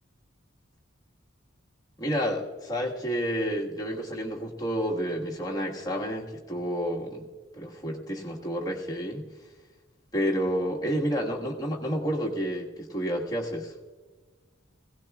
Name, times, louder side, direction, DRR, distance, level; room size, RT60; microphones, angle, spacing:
voice 1, 2.0-7.3 7.5-9.2 10.1-13.7, equal, 20° left, -3 dB, 1.6 m, -30 dB
21.0 x 17.0 x 2.4 m, 1.4 s
head